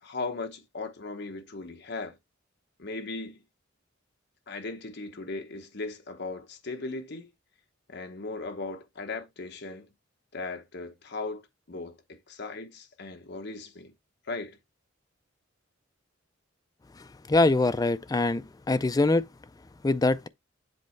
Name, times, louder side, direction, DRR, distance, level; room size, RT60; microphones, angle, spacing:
voice 1, 0.0-2.2 2.8-3.4 4.5-7.3 7.9-9.9 10.3-11.4 11.7-13.9 14.3-14.6, left 3 dB, 55° left, 1.0 m, -37 dB
voice 2, 17.3-18.4 18.7-19.2 19.8-20.3, left 2 dB, 20° left, 0.4 m, -23 dB
7.7 x 3.1 x 4.5 m
head